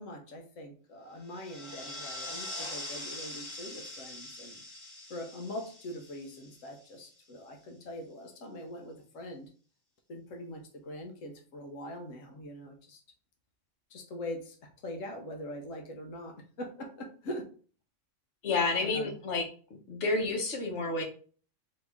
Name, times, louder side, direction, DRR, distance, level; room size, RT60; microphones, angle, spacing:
voice 1, 0.0-4.6 5.1-9.5 10.1-13.0 13.9-17.5 18.8-19.2, left 1 dB, 80° left, 3 dB, 1.2 m, -42 dB
sound 1, 1.2-7.0, left 2 dB, 30° left, 0.6 m, -43 dB
voice 2, 18.4-19.5 19.9-21.0, left 3 dB, 65° left, 2 dB, 1.2 m, -29 dB
4.3 x 2.9 x 3.4 m, 0.41 s
omnidirectional pair, 1.3 m